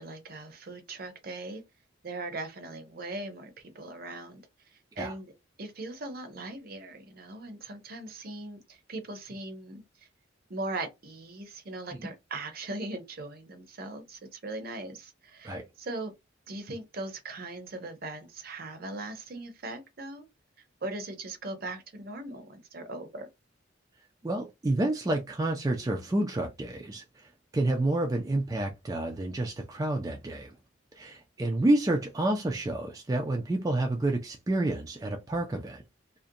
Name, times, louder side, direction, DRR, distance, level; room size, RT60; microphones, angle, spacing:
voice 1, 0.0-1.6 2.0-4.4 4.7-5.3 5.6-10.1 10.5-16.1 16.5-20.3 20.8-23.3, right 2 dB, 50° right, 0.7 m, -39 dB
voice 2, 24.2-30.5 30.9-35.8, right 2 dB, 20° right, 0.3 m, -29 dB
2.4 x 2.1 x 2.6 m
head